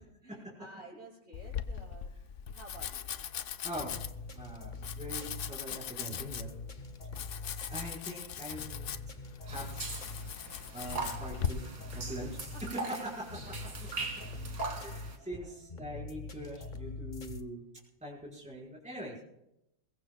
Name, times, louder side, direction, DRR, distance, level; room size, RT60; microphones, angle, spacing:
voice 1, 0.0-2.1 2.5-3.1 11.6-11.7 12.1-13.8 14.2-14.8 15.2-15.6, right 1 dB, 35° right, -5 dB, 6.4 m, -54 dB
Domestic sounds home sounds, 1.3-11.5, left 9 dB, 65° left, 0.7 m, -40 dB
sound 1, 3.7-17.4, left 3 dB, 35° left, 0.8 m, -44 dB
voice 2, 4.3-6.5 7.7-9.0 9.4-9.9 10.7-11.6 11.9-12.4 12.7-13.3 14.7-17.6 18.0-19.2, equal, 5° right, -5 dB, 4.7 m, -42 dB
sound 2, 9.5-15.2, right 3 dB, 50° right, 2.4 m, -41 dB
22.0 x 22.0 x 2.3 m, 0.85 s
omnidirectional pair, 2.0 m